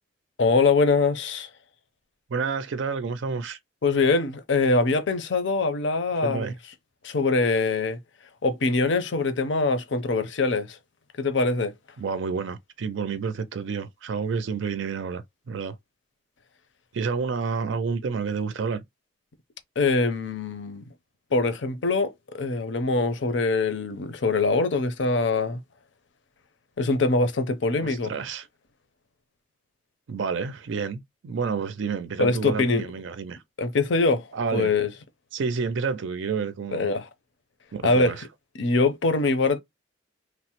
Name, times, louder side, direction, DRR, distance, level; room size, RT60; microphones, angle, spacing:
voice 1, 0.4-1.5 3.8-6.5 7.0-8.0 8.4-10.8 11.2-11.7 19.8-20.8 21.3-25.6 26.8-28.1 32.2-32.8 33.6-34.9 36.7-37.1 37.8-38.2 38.6-39.6, left 3 dB, 70° left, 0.6 m, -23 dB
voice 2, 2.3-3.6 6.2-6.5 12.0-15.8 16.9-18.8 27.8-28.5 30.1-33.4 34.3-34.7 35.3-36.9 37.7-38.3, right 5 dB, 75° right, 0.4 m, -29 dB
3.2 x 2.0 x 2.9 m
head